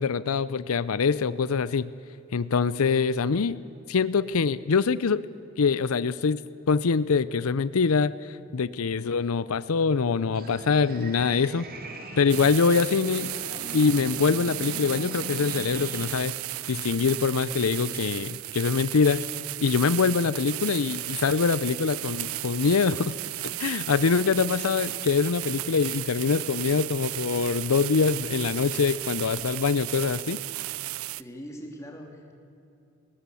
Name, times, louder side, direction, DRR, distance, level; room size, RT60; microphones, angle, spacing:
voice 1, 0.0-1.9 2.3-3.6 3.9-5.3 5.6-6.4 6.7-11.7 12.2-13.3 13.7-16.3 16.7-19.2 19.6-23.1 23.6-30.4, left 5 dB, 90° left, 17 dB, 0.6 m, -24 dB
sound 1, 10.3-16.1, right 1 dB, 45° right, 2.6 m, -41 dB
sound 2, 12.3-31.2, right 17 dB, 85° right, 0.5 m, -34 dB
voice 2, 31.2-32.3, equal, 15° left, 2 dB, 2.9 m, -41 dB
19.5 x 19.0 x 8.4 m, 2.8 s
head